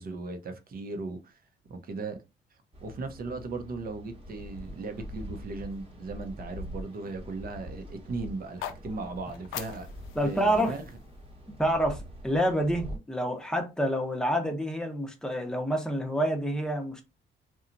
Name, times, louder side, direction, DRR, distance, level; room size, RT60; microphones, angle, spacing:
voice 1, 0.0-1.4 1.7-2.2 2.8-9.9 10.2-10.8, right 3 dB, 50° right, 0.7 m, -37 dB
sound 1, 2.7-13.0, equal, 30° right, 1.0 m, -44 dB
sound 2, 8.4-12.5, left 10 dB, 85° left, 0.4 m, -44 dB
voice 2, 10.1-10.7 11.6-17.0, equal, 5° left, 0.7 m, -28 dB
2.9 x 2.3 x 2.5 m
cardioid pair, 90°, 20 cm